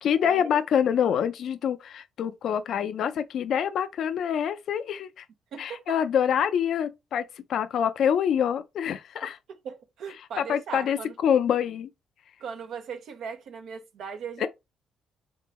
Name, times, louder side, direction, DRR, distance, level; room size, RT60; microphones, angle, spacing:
voice 1, 0.0-5.2 5.6-9.4 10.4-11.0 11.2-11.9 14.4-14.5, left 8 dB, 70° left, 0.5 m, -26 dB
voice 2, 5.5-6.0 9.2-9.3 9.6-11.1 12.4-14.5, right 6 dB, 70° right, 0.8 m, -38 dB
3.6 x 3.3 x 4.2 m
cardioid pair, 90°, 0 cm